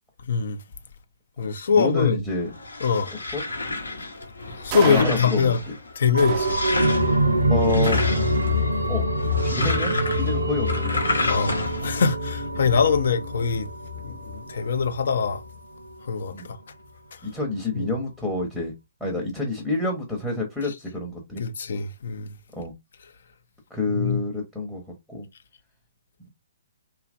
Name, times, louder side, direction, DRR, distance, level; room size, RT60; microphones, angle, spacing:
voice 1, 0.3-0.6 1.4-2.2 2.8-3.1 4.6-5.6 6.0-6.6 9.9-10.3 11.3-13.7 14.0-15.4 16.1-16.6 17.7-17.9 21.4-22.3 23.9-24.2, left 5 dB, 55° left, 0.4 m, -23 dB
voice 2, 1.7-2.5 3.1-3.4 4.9-5.5 6.2-6.3 7.5-8.0 8.9-9.1 9.4-11.0 12.5-12.7 16.3-16.5 17.2-18.7 19.0-21.4 22.5-22.7 23.7-24.8 25.1-25.3, left 2 dB, 5° left, 0.7 m, -28 dB
sound 1, 2.3-12.0, left 2 dB, 75° left, 0.7 m, -31 dB
sound 2, 4.7-5.7 6.2-7.2 7.8-8.8, right 11 dB, 30° right, 0.3 m, -35 dB
sound 3, 6.1-15.5 15.9-16.0, equal, 80° right, 0.6 m, -25 dB
2.9 x 2.4 x 2.4 m
figure-of-eight pair, 125°, 0 cm